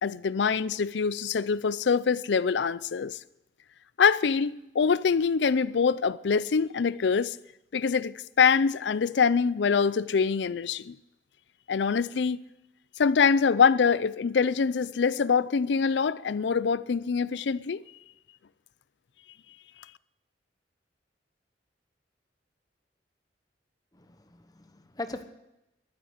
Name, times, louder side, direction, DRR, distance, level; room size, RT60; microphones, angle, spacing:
voice 1, 0.0-3.2 4.0-7.4 7.7-11.0 11.7-12.4 13.0-17.8, left 5 dB, 75° left, 0.5 m, -24 dB
voice 2, 23.9-25.2, left 2 dB, 20° left, 0.9 m, -40 dB
11.5 x 9.8 x 8.1 m
head